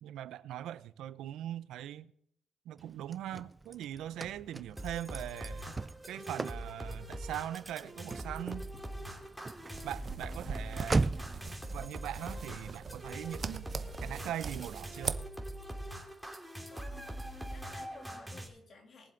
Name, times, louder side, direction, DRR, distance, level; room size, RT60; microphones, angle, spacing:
voice 1, 0.0-2.1 2.7-5.7 6.1-8.7 9.8-11.1 11.7-13.6 14.0-15.2, right 12 dB, 85° right, 0.5 m, -41 dB
Car / Slam, 2.8-11.5, right 3 dB, 25° right, 0.4 m, -39 dB
sound 1, 4.8-18.5, right 1 dB, 5° right, 2.6 m, -43 dB
sound 2, 9.7-15.2, right 5 dB, 40° right, 0.9 m, -41 dB
voice 2, 16.7-19.1, left 3 dB, 50° left, 3.1 m, -55 dB
21.5 x 7.5 x 3.9 m
cardioid pair, 90°, 0 cm